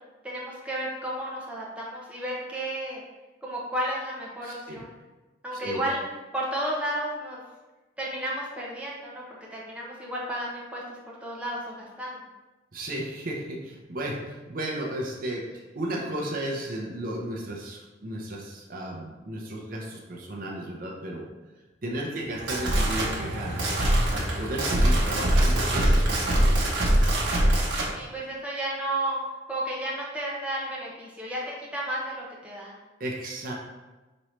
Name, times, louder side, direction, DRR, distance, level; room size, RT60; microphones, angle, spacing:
voice 1, 0.2-3.0 3.4-5.0 5.4-6.0 6.3-7.4 8.0-9.2 9.5-12.2 27.9-29.2 29.5-32.7, right 1 dB, 5° right, -5 dB, 0.7 m, -32 dB
voice 2, 4.4-4.8 5.6-5.8 12.7-21.3 21.8-23.8 24.1-26.7 33.0-33.5, right 1 dB, 45° right, -1 dB, 0.6 m, -34 dB
square wheeled steamroller, 22.2-27.9, right 1 dB, 75° right, 1.0 m, -23 dB
5.2 x 3.0 x 3.1 m, 1.2 s
head